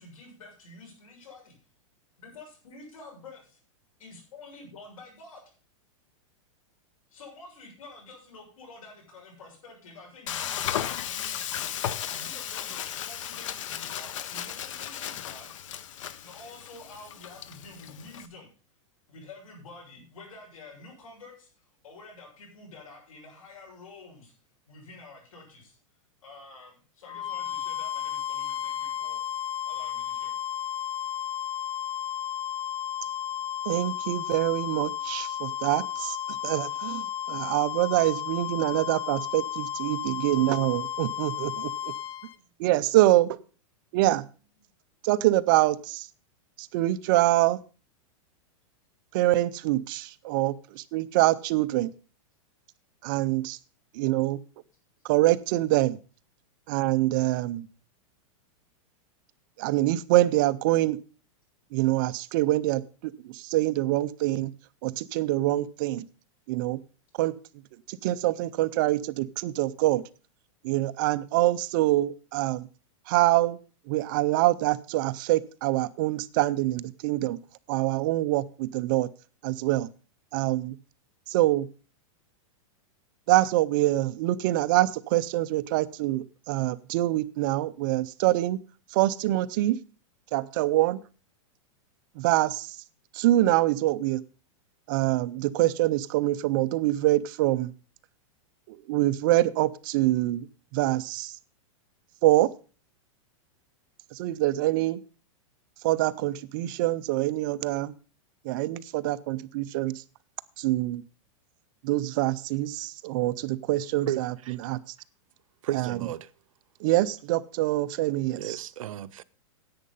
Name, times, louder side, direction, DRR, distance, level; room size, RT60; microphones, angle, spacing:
voice 1, 0.0-1.5 2.2-3.6 4.0-5.4 7.1-15.5 16.1-18.5 19.1-24.3 24.7-25.8 26.2-29.2 29.6-30.3 37.2-37.4 42.2-42.4, left 3 dB, 90° left, 6.7 m, -49 dB
Frying (food), 10.3-18.3, left 10 dB, 70° left, 0.9 m, -35 dB
sound 1, 27.1-42.4, left 10 dB, 30° left, 0.8 m, -33 dB
voice 2, 33.7-36.2 36.4-41.9 42.6-43.4 43.9-44.2 45.0-46.1 46.6-47.6 49.1-51.9 53.0-53.6 53.9-54.4 55.0-56.0 56.7-57.7 59.6-61.0 61.7-64.5 64.8-66.0 66.5-66.8 67.2-67.3 67.9-70.0 70.6-72.7 73.1-73.6 73.9-77.4 77.7-79.1 79.4-79.9 80.3-80.8 81.3-81.7 83.3-88.6 88.9-89.8 90.3-91.0 92.2-92.8 93.1-94.2 94.9-97.7 98.7-100.5 100.7-101.3 102.2-102.5 104.2-105.0 105.8-107.9 108.4-110.0 110.6-111.0 111.8-114.3 114.6-114.8 115.7-116.0 116.8-118.6, right 16 dB, 40° right, 0.5 m, -25 dB
voice 3, 114.1-114.6 115.6-116.3 118.4-119.2, right 12 dB, 80° right, 0.7 m, -33 dB
10.5 x 8.4 x 5.4 m
supercardioid pair, 165°, 17 cm